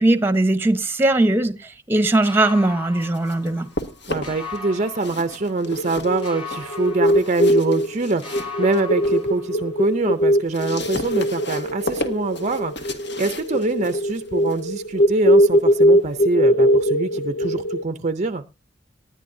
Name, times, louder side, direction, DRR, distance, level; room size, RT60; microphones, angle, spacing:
voice 1, 0.0-1.5 1.9-3.7, right 2 dB, 10° right, 1.0 m, -19 dB
sound 1, 2.2-3.9 4.2-5.9 6.2-7.9 8.2-9.9, left 4 dB, 30° left, 3.5 m, -38 dB
sound 2, 2.7-4.6 4.9-9.3 9.7-16.3, left 2 dB, 60° left, 1.6 m, -35 dB
voice 2, 4.1-18.4, right 3 dB, 35° right, 0.6 m, -24 dB
sound 3, 5.7-17.8, equal, 90° left, 0.8 m, -20 dB
19.5 x 11.0 x 2.7 m
head